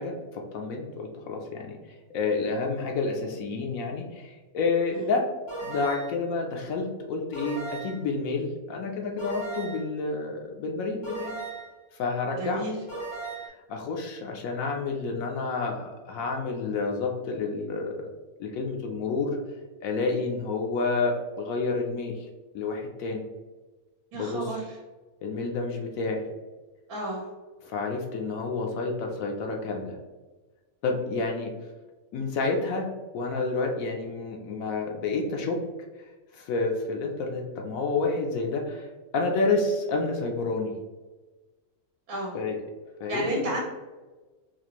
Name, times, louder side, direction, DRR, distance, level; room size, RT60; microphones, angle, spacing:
voice 1, 0.0-5.2 5.6-11.4 11.9-12.7 13.7-17.9 18.4-19.4 19.8-22.2 22.5-23.2 24.1-24.6 25.2-26.2 27.6-30.0 30.8-31.5 32.1-32.9 33.1-35.6 36.0-36.1 36.3-38.9 39.1-40.7 42.3-42.6 43.0-43.5, left 3 dB, 70° left, 1 dB, 0.9 m, -29 dB
sound 1, 5.5-6.2 7.3-8.1 9.2-9.9 11.0-11.8 12.9-13.5, right 3 dB, 90° left, 2.2 m, -37 dB
voice 2, 12.3-12.7 24.1-24.8 26.9-27.3 42.1-42.4 43.1-43.6, right 1 dB, 75° right, -3 dB, 1.3 m, -32 dB
4.2 x 2.5 x 2.9 m, 1.3 s
omnidirectional pair, 1.6 m